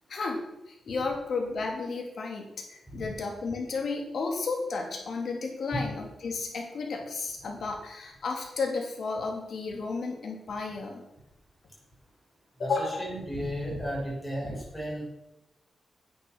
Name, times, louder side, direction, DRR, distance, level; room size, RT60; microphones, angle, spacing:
voice 1, 0.1-11.0 12.6-13.1, left 4 dB, 60° left, 2 dB, 2.9 m, -33 dB
voice 2, 12.6-15.0, equal, 5° left, -5 dB, 5.6 m, -34 dB
9.9 x 8.6 x 6.6 m, 0.89 s
wide cardioid pair, 125°, 0 cm